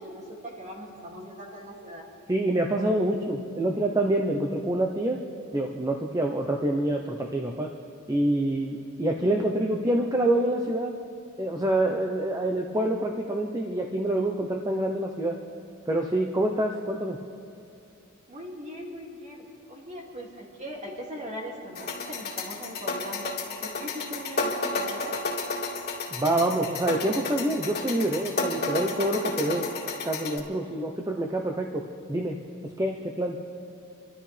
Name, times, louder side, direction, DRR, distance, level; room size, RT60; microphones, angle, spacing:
voice 1, 0.0-2.0 18.3-23.3 23.6-25.2, equal, 35° right, -2 dB, 2.5 m, -40 dB
voice 2, 2.3-5.2 5.5-7.7 8.1-11.0 11.4-15.4 15.9-17.2 26.1-29.7 30.0-32.4 32.6-33.4, right 1 dB, 15° right, 2 dB, 0.8 m, -26 dB
sound 1, 21.7-30.4, left 3 dB, 50° left, 2.5 m, -32 dB
28.5 x 13.0 x 3.4 m, 2.7 s
head